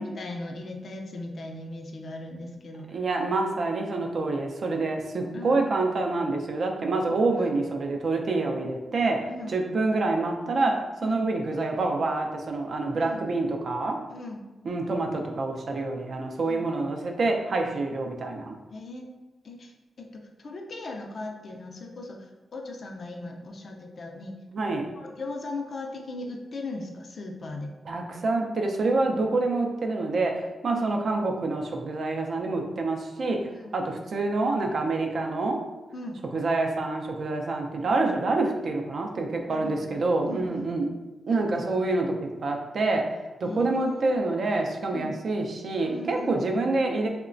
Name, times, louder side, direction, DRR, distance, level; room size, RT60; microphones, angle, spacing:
voice 1, 0.0-3.0 5.3-5.6 7.3-7.5 9.3-9.5 11.0-11.2 13.0-13.2 14.1-14.4 16.5-16.7 18.7-19.1 19.4-27.7 30.7-30.9 33.6-33.7 35.9-36.2 39.5-39.9 40.2-40.7 43.4-44.2 44.9-45.1 45.8-46.4, left 2 dB, 60° left, 3 dB, 0.4 m, -38 dB
voice 2, 2.9-9.2 9.5-10.7 11.0-14.0 14.6-18.6 24.5-24.8 27.9-33.4 33.7-35.6 36.3-40.9 41.3-43.0 43.4-47.1, right 3 dB, 65° right, 2 dB, 0.4 m, -27 dB
3.0 x 2.1 x 2.4 m, 1.1 s
cardioid pair, 50°, 0 cm